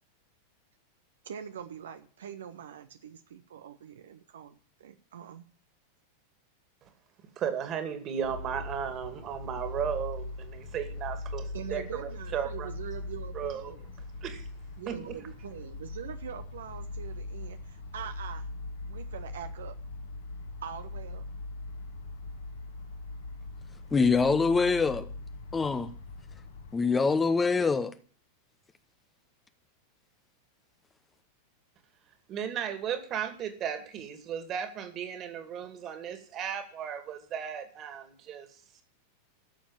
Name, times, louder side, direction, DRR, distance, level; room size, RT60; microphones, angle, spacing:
voice 1, 1.2-5.5 11.5-13.8 14.8-18.5 18.8-19.8 20.6-21.2, right 8 dB, 65° right, 0.9 m, -43 dB
voice 2, 7.4-12.7 13.3-13.7 14.2-14.5 14.9-15.2 32.3-38.6, right 8 dB, 30° right, 2.4 m, -35 dB
sound 1, 8.2-26.7, left 2 dB, 65° left, 2.1 m, -41 dB
voice 3, 23.9-25.1 25.5-25.9 26.7-27.9, left 4 dB, 15° left, 0.9 m, -24 dB
13.5 x 7.2 x 8.9 m
figure-of-eight pair, 90°, 0 cm